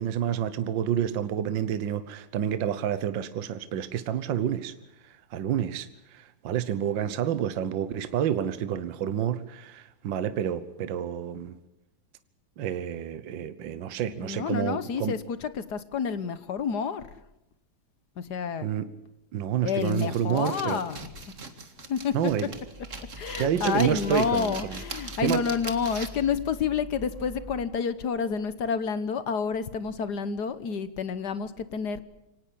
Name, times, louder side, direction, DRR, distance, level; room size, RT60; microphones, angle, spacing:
voice 1, 0.0-4.7 5.0-11.6 12.6-15.2 18.6-18.9 19.3-20.8 22.1-22.5 23.4-24.8 25.2-25.4, right 9 dB, 65° right, 1.7 m, -29 dB
voice 2, 14.2-17.1 18.2-18.7 19.6-21.1 21.9-22.1 23.2-32.0, left 6 dB, 55° left, 1.6 m, -29 dB
sound 1, 19.8-26.3, right 4 dB, 40° right, 2.2 m, -41 dB
Vehicle horn car horn honking / Traffic noise roadway noise, 22.3-27.6, left 2 dB, 15° right, 6.6 m, -44 dB
25.0 x 18.5 x 8.5 m
omnidirectional pair, 2.3 m